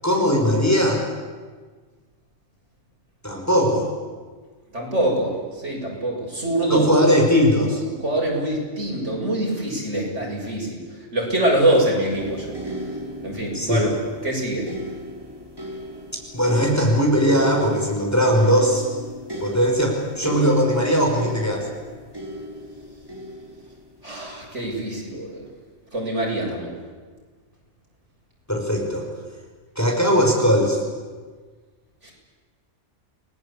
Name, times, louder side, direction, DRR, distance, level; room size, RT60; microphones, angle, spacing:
voice 1, 0.0-1.0 3.2-3.9 6.7-7.8 13.5-13.9 16.3-18.9 19.4-21.7 28.5-29.0 29.8-30.8, equal, 15° left, 0 dB, 5.5 m, -19 dB
voice 2, 4.7-5.3 5.6-6.9 8.0-10.8 11.1-12.5 13.2-13.9 14.2-14.7 24.0-25.4 25.9-26.7 32.0-32.1, right 1 dB, 80° right, -2 dB, 7.6 m, -24 dB
sound 1, 12.1-25.2 26.0-26.2, equal, 20° right, 4.0 m, -35 dB
29.5 x 20.5 x 8.7 m, 1.4 s
omnidirectional pair, 1.2 m